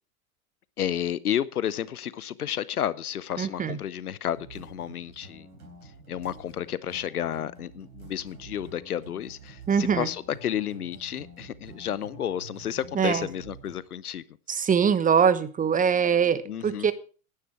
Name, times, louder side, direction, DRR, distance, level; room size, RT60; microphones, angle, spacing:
voice 1, 0.8-5.5 6.1-14.2 16.5-16.9, left 10 dB, 90° left, 0.8 m, -31 dB
voice 2, 3.4-3.8 9.7-10.1 12.9-13.3 14.5-16.9, right 7 dB, 20° right, 1.0 m, -23 dB
sound 1, 4.3-13.8, right 3 dB, 90° right, 3.9 m, -48 dB
10.5 x 10.0 x 5.9 m
hypercardioid pair, 95°, 43 cm